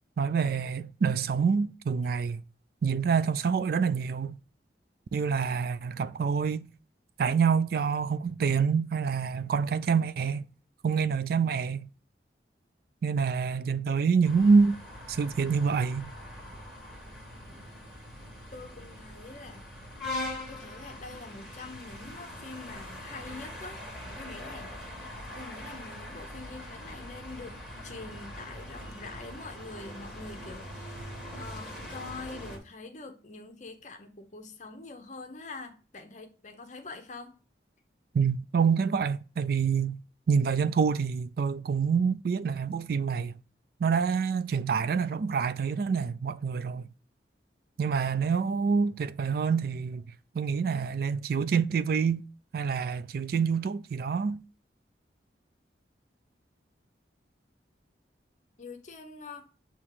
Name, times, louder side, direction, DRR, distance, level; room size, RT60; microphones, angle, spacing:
voice 1, 0.2-2.4 2.8-4.4 5.1-6.7 7.2-10.4 10.8-11.9 13.0-14.8 15.1-16.1 38.1-40.0 40.3-43.4 43.8-46.8 47.8-50.0 50.3-52.3 52.5-54.4, right 5 dB, 55° right, 0.3 m, -26 dB
sound 1, 14.2-32.6, left 1 dB, 5° right, 1.6 m, -42 dB
voice 2, 18.5-19.7 20.5-24.8 25.3-31.0 31.3-37.3 58.6-59.5, left 3 dB, 45° left, 0.8 m, -45 dB
7.2 x 2.9 x 4.7 m
head